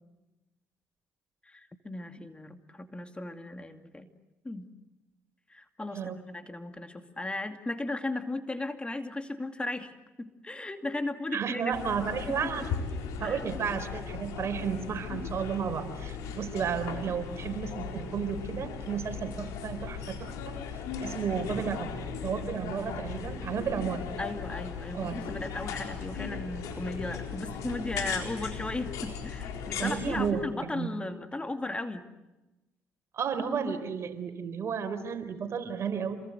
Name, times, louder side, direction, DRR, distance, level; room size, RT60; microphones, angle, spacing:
voice 1, 1.4-4.1 4.4-4.8 5.5-11.7 12.3-12.7 13.2-13.4 24.2-32.1, left 2 dB, 20° left, 7 dB, 2.4 m, -36 dB
voice 2, 11.3-12.7 13.2-20.6 21.0-21.9 22.2-24.0 24.9-25.2 29.8-30.4 30.7-30.9 33.1-36.2, right 7 dB, 55° right, 8 dB, 4.2 m, -33 dB
sound 1, 11.7-30.3, left 6 dB, 80° left, 4.2 m, -37 dB
28.0 x 22.5 x 8.0 m, 1.0 s
supercardioid pair, 60°, 6 cm